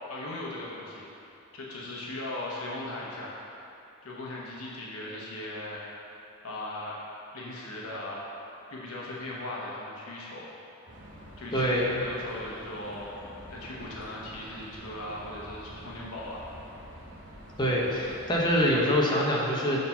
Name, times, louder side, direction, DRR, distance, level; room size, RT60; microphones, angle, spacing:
voice 1, 0.1-1.0 1.5-3.4 4.0-5.8 6.4-7.0 7.3-8.2 8.7-10.5 11.4-16.4, left 1 dB, 75° left, -4 dB, 1.0 m, -38 dB
sound 1, 10.9-18.7, equal, 55° right, 1.4 m, -47 dB
voice 2, 11.5-12.0 17.6-19.8, equal, 20° left, -4 dB, 1.0 m, -25 dB
6.7 x 4.3 x 5.6 m, 2.8 s
head